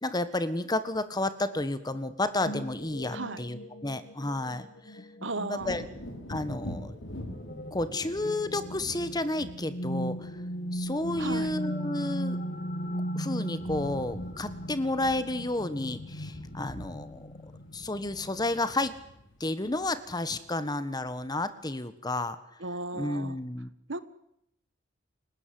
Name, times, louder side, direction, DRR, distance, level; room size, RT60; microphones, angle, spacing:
voice 1, 0.0-5.0 5.5-5.8 6.3-6.9 7.7-10.4 10.7-12.4 13.1-18.9 19.4-22.4 23.0-23.7, left 2 dB, 20° left, 13 dB, 1.5 m, -31 dB
sound 1, 2.4-18.6, equal, 50° left, 1.8 m, -38 dB
voice 2, 3.1-3.4 5.2-5.8 11.2-11.5 22.6-23.4 23.9-24.0, right 3 dB, 75° right, 14 dB, 1.5 m, -35 dB
Wind / Thunder, 5.6-13.1 13.4-20.6 21.1-21.2, equal, 90° left, 6.3 m, -45 dB
30.0 x 17.5 x 7.8 m, 0.78 s
head